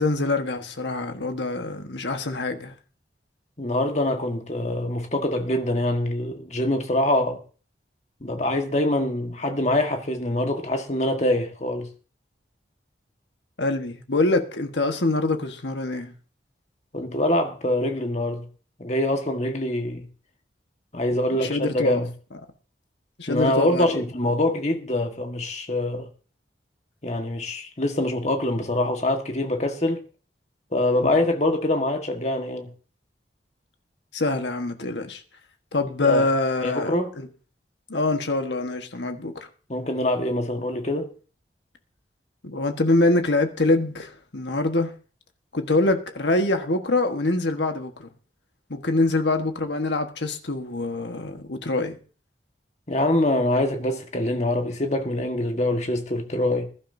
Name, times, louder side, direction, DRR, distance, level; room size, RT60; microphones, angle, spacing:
voice 1, 0.0-2.7 13.6-16.1 21.3-22.0 23.2-24.0 31.0-31.1 34.1-35.2 35.7-37.3 37.9-39.5 42.4-44.9 45.5-48.1 48.7-52.0, left 2 dB, 80° left, 1.4 m, -24 dB
voice 2, 3.6-7.4 8.2-11.9 16.9-18.5 18.8-20.1 20.9-22.1 23.3-26.1 27.0-30.0 30.7-32.7 35.8-36.3 36.6-37.1 39.7-41.1 52.9-56.7, left 1 dB, 40° left, 1.6 m, -24 dB
20.5 x 11.5 x 2.7 m
head